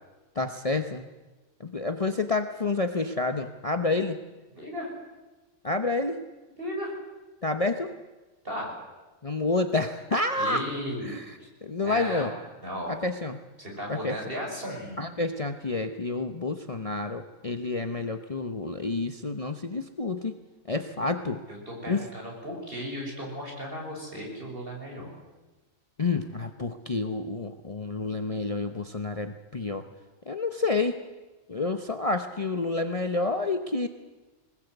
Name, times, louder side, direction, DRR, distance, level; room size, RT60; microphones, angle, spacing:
voice 1, 0.3-1.1 1.6-4.2 5.6-6.2 7.4-8.0 9.2-10.6 11.0-12.3 12.9-13.4 13.9-14.1 15.0-20.3 20.7-21.4 21.9-22.1 26.0-29.8 30.3-31.0 31.5-33.9, left 3 dB, 30° left, 7 dB, 0.9 m, -29 dB
voice 2, 4.5-4.9 6.6-7.0 8.4-8.8 10.4-11.2 11.8-13.0 13.6-15.1 21.5-25.1, equal, 45° right, -1 dB, 6.9 m, -35 dB
22.5 x 20.0 x 8.1 m, 1.2 s
omnidirectional pair, 1.3 m